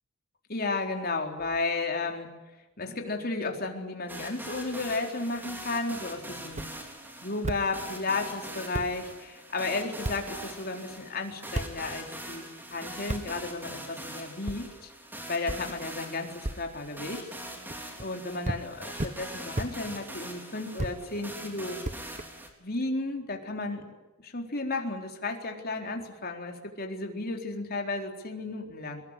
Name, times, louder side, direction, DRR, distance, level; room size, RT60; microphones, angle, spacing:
voice 1, 0.5-2.3 2.8-6.6 7.2-14.9 15.3-17.3 18.0-21.8 22.6-23.8 24.2-29.0, left 3 dB, 45° left, 3 dB, 4.0 m, -33 dB
sound 1, 4.1-22.5, right 1 dB, 10° right, 4.0 m, -43 dB
sound 2, 6.5-6.7 7.4-7.6 8.4-8.5 8.7-8.9 10.0-10.2 11.5-11.7 13.1-13.2 14.5-14.6 15.5-15.6 16.4-16.6 17.7-18.1 18.4-18.6 19.0-19.1 19.6-19.7 20.8-20.9 21.8-22.5, right 1 dB, 35° right, 1.2 m, -32 dB
23.5 x 22.0 x 9.8 m, 1.1 s
head